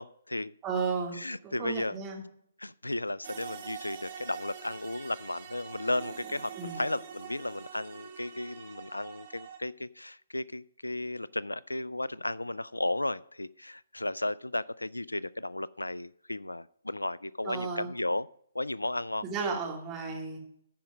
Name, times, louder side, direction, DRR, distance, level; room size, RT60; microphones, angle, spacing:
voice 1, 0.0-0.5 1.2-2.0 2.6-18.3 18.5-19.3, left 2 dB, 85° left, 22 dB, 0.3 m, -34 dB
voice 2, 0.6-1.1 1.4-2.2 6.6-6.8 17.4-17.9 19.2-20.4, right 5 dB, 15° right, -2 dB, 2.7 m, -33 dB
sound 1, 3.2-9.6, right 8 dB, 40° right, 1.8 m, -45 dB
14.0 x 5.3 x 5.0 m, 0.68 s
figure-of-eight pair, 130°, 0 cm